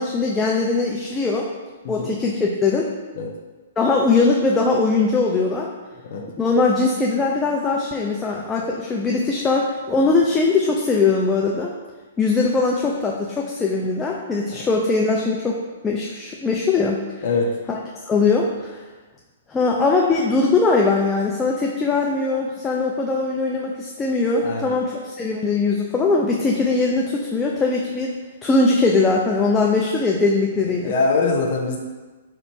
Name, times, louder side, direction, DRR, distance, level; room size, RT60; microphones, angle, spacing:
voice 1, 0.0-1.5 1.9-2.9 3.8-5.7 6.4-11.7 12.2-15.6 15.8-17.0 17.7-17.8 18.1-18.8 19.5-28.1 28.4-30.9, left 3 dB, 15° left, -2 dB, 0.5 m, -20 dB
voice 2, 30.8-31.8, left 4 dB, 50° left, 0 dB, 0.7 m, -22 dB
4.4 x 2.5 x 4.6 m, 1.2 s
figure-of-eight pair, 120°, 0 cm